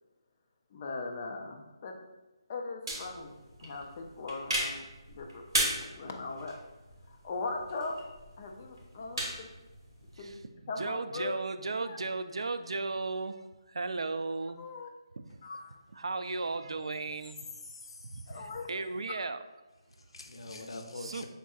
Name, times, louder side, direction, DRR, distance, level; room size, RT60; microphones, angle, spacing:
voice 1, 0.7-2.0 2.5-3.3 3.6-6.6 7.0-8.0 8.4-9.5 10.2-10.3 10.7-11.3 11.8-12.0 14.6-14.9 15.4-15.7 18.3-18.7, left 3 dB, 20° left, 2 dB, 0.3 m, -39 dB
sound 1, 2.9-10.4, right 1 dB, 55° right, 1.3 m, -37 dB
voice 2, 10.8-14.6 15.2-15.4 15.9-17.4 18.1-19.4 21.0-21.3, right 3 dB, 85° right, 10 dB, 0.3 m, -35 dB
voice 3, 17.5-18.4 19.9-21.3, left 2 dB, 70° left, 5 dB, 0.6 m, -45 dB
5.2 x 3.6 x 2.3 m, 1.1 s
hypercardioid pair, 175°, 3 cm